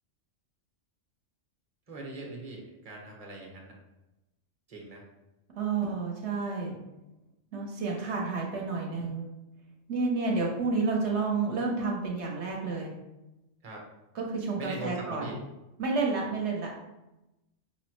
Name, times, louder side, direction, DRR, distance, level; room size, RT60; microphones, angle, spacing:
voice 1, 1.9-3.8 4.7-5.0 13.6-13.8 14.6-15.4, right 3 dB, 35° right, -1 dB, 0.8 m, -41 dB
voice 2, 5.5-6.7 7.5-9.3 9.9-12.9 14.1-15.2 15.8-16.8, right 4 dB, 65° right, -1 dB, 1.0 m, -30 dB
5.6 x 2.0 x 2.9 m, 0.97 s
omnidirectional pair, 1.3 m